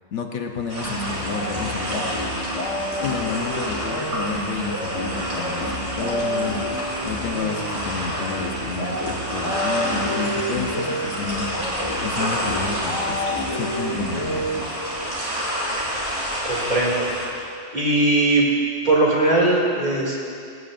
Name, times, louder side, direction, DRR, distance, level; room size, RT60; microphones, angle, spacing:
voice 1, 0.1-2.1 3.0-6.6 7.0-11.5 12.0-13.2 13.5-14.5, left 5 dB, 70° left, 3 dB, 1.1 m, -30 dB
sound 1, 0.7-17.3, equal, 60° right, 3.0 m, -29 dB
sound 2, 0.8-15.1, equal, 25° left, 1.5 m, -30 dB
voice 2, 16.4-17.1 17.3-18.4 18.8-20.1, right 2 dB, 35° right, -6 dB, 2.5 m, -20 dB
21.5 x 9.4 x 2.5 m, 2.5 s
omnidirectional pair, 1.3 m